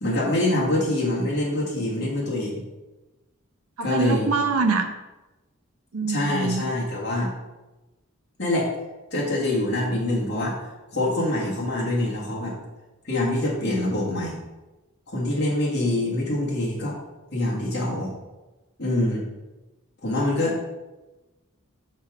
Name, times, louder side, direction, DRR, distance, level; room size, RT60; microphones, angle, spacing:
voice 1, 0.0-2.6 3.8-4.3 6.1-7.3 8.4-8.7 9.1-10.5 10.9-12.6 13.0-14.4 15.1-17.0 17.3-18.1 18.8-19.3 20.0-20.6, left 1 dB, 50° left, -5 dB, 1.4 m, -25 dB
voice 2, 3.8-4.9 5.9-6.6, right 4 dB, 85° right, 5 dB, 0.7 m, -24 dB
5.6 x 3.5 x 5.9 m, 1.1 s
head